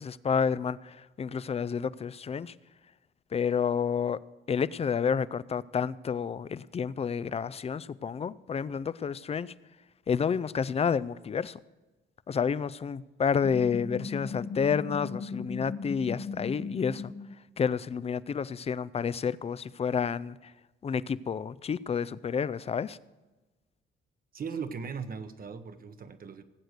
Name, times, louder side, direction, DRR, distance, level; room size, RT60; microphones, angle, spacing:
voice 1, 0.0-2.5 3.3-4.2 4.5-9.5 10.1-11.6 12.3-17.1 17.6-20.5 20.8-23.0, left 6 dB, 30° left, 19 dB, 0.4 m, -30 dB
sound 1, 13.4-17.3, left 4 dB, 80° left, 1.2 m, -37 dB
voice 2, 24.3-26.4, right 6 dB, 45° right, 9 dB, 1.0 m, -38 dB
17.5 x 7.9 x 6.6 m, 1.1 s
cardioid pair, 90°, 20 cm